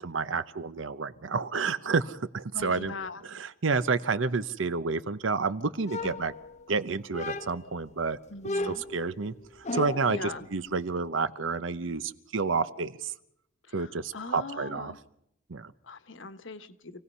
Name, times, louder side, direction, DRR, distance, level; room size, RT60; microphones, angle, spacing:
voice 1, 0.0-2.9 3.2-6.3 6.7-8.2 8.6-9.3 9.7-13.1 13.7-14.9 15.5-15.7, right 4 dB, 80° right, 14 dB, 0.8 m, -30 dB
voice 2, 2.5-3.2 6.0-6.3 8.3-8.8 10.1-10.5 13.8-15.0 15.9-17.0, left 3 dB, 75° left, 10 dB, 1.3 m, -40 dB
sound 1, 5.9-6.7 7.1-7.8 8.4-10.2, left 2 dB, 35° left, 0.8 m, -35 dB
27.5 x 17.5 x 5.5 m, 0.78 s
head